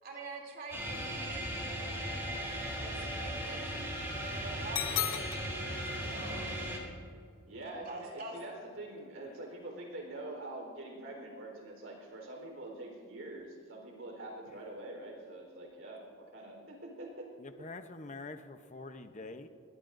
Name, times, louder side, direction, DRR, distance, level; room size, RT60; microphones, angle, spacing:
voice 1, 0.0-3.8 4.1-5.1 6.0-6.5 7.8-8.4, right 2 dB, 45° right, -1 dB, 3.0 m, -46 dB
sound 1, 0.7-6.8, right 1 dB, 10° right, 3.1 m, -37 dB
sound 2, 4.7-5.8, left 11 dB, 65° left, 0.9 m, -35 dB
voice 2, 7.5-17.3, right 2 dB, 65° right, 0 dB, 4.1 m, -45 dB
voice 3, 17.4-19.5, left 3 dB, 35° left, 8 dB, 0.8 m, -45 dB
21.5 x 19.0 x 2.6 m, 2.2 s
head